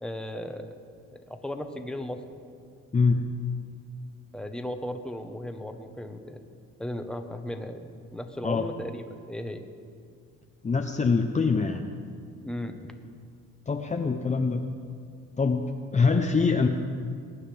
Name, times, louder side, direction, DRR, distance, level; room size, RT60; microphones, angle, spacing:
voice 1, 0.0-0.7 1.3-2.4 4.3-6.4 6.8-9.7 12.4-12.8, left 1 dB, 5° left, 6 dB, 1.0 m, -36 dB
voice 2, 2.9-3.2 8.4-8.6 10.6-11.9 13.7-14.7 15.4-15.7 15.9-16.7, left 4 dB, 25° left, 3 dB, 0.7 m, -24 dB
22.0 x 9.6 x 3.4 m, 2.3 s
cardioid pair, 90°, 30 cm